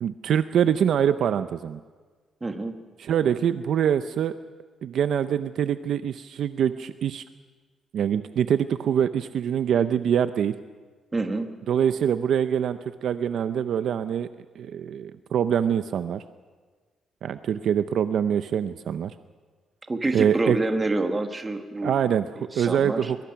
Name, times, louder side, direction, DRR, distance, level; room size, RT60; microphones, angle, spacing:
voice 1, 0.0-1.8 3.0-4.3 4.8-7.2 7.9-10.6 11.7-14.3 14.6-16.2 17.2-19.1 20.1-20.6 21.8-23.2, right 8 dB, 60° right, 11 dB, 0.6 m, -24 dB
voice 2, 2.4-2.7 11.1-11.5 19.9-21.9 22.4-23.1, right 2 dB, 15° right, 6 dB, 1.4 m, -27 dB
22.5 x 22.5 x 5.9 m, 1.4 s
cardioid pair, 175°, 0 cm